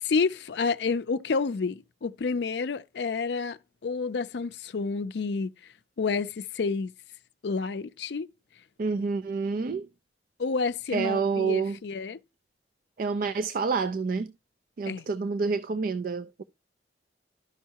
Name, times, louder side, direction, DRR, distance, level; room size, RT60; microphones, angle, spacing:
voice 1, 0.0-5.5 6.0-6.9 7.4-8.3 10.4-12.2 14.9-15.1, left 4 dB, 65° left, 0.4 m, -29 dB
voice 2, 8.8-9.9 10.9-11.8 13.0-14.3 14.8-16.4, right 4 dB, 50° right, 0.4 m, -28 dB
12.0 x 5.5 x 2.8 m
head